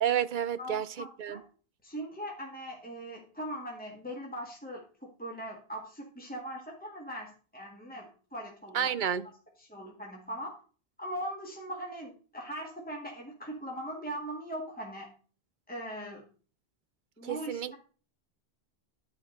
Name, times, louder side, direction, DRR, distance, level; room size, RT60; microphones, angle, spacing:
voice 1, 0.0-1.4 8.7-9.3 17.2-17.7, right 9 dB, 55° right, 0.7 m, -30 dB
voice 2, 0.6-1.4 1.8-8.9 9.6-10.5 11.0-15.1 15.7-16.3 17.2-17.8, equal, 10° left, 1.9 m, -40 dB
12.0 x 5.0 x 6.5 m
omnidirectional pair, 1.0 m